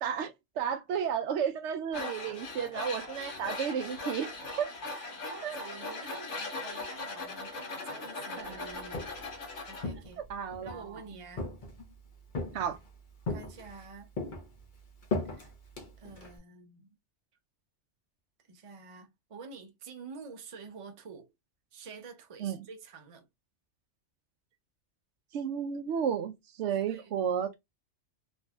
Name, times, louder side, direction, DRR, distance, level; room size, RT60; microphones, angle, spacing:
voice 1, 0.0-4.3 4.6-4.7 5.4-5.6 8.4-8.5 10.3-10.9 12.5-12.8 22.4-22.6 25.3-26.3 26.6-27.6, right 8 dB, 80° right, 0.9 m, -32 dB
Tools, 1.9-9.9, left 3 dB, 85° left, 1.5 m, -39 dB
voice 2, 4.5-9.1 9.7-10.2 10.6-11.5 13.3-14.1 15.3-15.5 16.0-16.9 18.5-21.3 21.7-23.3 26.7-27.6, right 5 dB, 35° right, 0.6 m, -49 dB
Walk footsteps, 8.7-9.3 9.8-10.8 11.4-11.9 12.4-12.9 13.3-13.9 14.2-16.4, left 3 dB, 45° left, 1.0 m, -37 dB
3.2 x 2.6 x 2.3 m
omnidirectional pair, 1.2 m